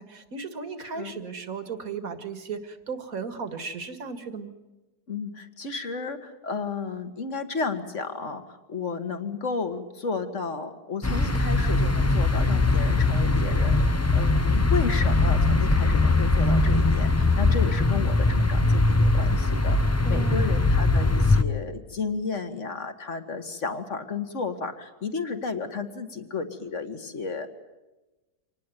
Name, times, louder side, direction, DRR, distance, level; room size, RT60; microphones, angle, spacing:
voice 1, 0.0-4.5 20.0-20.6, right 5 dB, 60° right, 9 dB, 2.3 m, -36 dB
voice 2, 5.1-27.5, left 4 dB, 50° left, 8 dB, 2.2 m, -33 dB
sound 1, 11.0-21.4, left 2 dB, 25° left, 0.3 m, -21 dB
26.0 x 19.0 x 9.3 m, 1.1 s
omnidirectional pair, 1.7 m